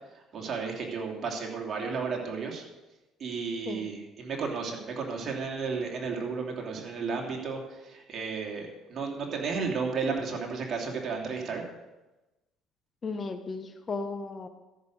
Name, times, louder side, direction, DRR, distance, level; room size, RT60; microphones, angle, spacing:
voice 1, 0.3-2.6 3.2-11.6, right 5 dB, 45° right, 0 dB, 3.0 m, -33 dB
voice 2, 13.0-14.5, left 4 dB, 35° left, 8 dB, 1.0 m, -35 dB
13.5 x 6.6 x 6.4 m, 1.1 s
supercardioid pair, 80°, 0 cm